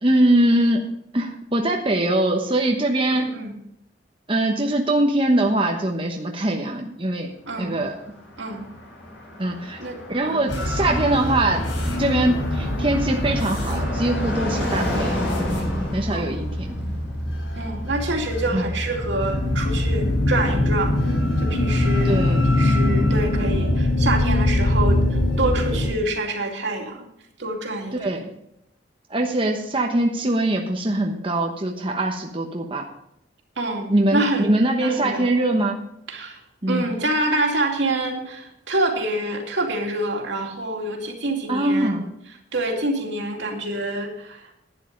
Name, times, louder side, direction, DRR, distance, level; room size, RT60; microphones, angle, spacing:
voice 1, 0.0-3.3 4.3-7.3 7.6-7.9 9.4-9.8 10.1-11.6 12.0-15.2 15.9-16.8 18.5-18.6 22.0-22.4 27.9-28.2 29.1-32.8 33.9-35.8 36.6-36.8 41.5-42.1, right 1 dB, 30° right, 2 dB, 1.1 m, -22 dB
Car passing by, 7.5-19.5, left 1 dB, 65° left, 5.9 m, -33 dB
voice 2, 7.5-7.8 8.4-8.7 9.8-10.0 10.2-10.4 16.1-16.3 17.6-22.1 22.5-27.1 27.4-28.3 33.6-34.5 34.8-35.3 36.1-36.4 36.7-42.0 42.5-44.5, right 1 dB, 70° right, 2 dB, 2.5 m, -27 dB
sound 1, 10.5-25.9, left 1 dB, 90° left, 4.3 m, -23 dB
11.5 x 10.0 x 5.2 m, 0.77 s
head